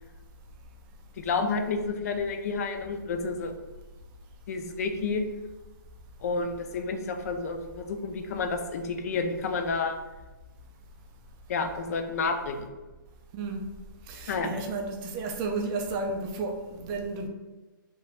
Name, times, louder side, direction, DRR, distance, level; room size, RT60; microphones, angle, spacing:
voice 1, 1.2-3.5 4.5-5.2 6.2-10.0 11.5-12.7 14.3-14.5, left 4 dB, 45° left, 6 dB, 0.4 m, -30 dB
voice 2, 14.1-17.3, right 3 dB, 20° right, 3 dB, 0.3 m, -32 dB
2.9 x 2.3 x 3.2 m, 1.2 s
hypercardioid pair, 145°, 11 cm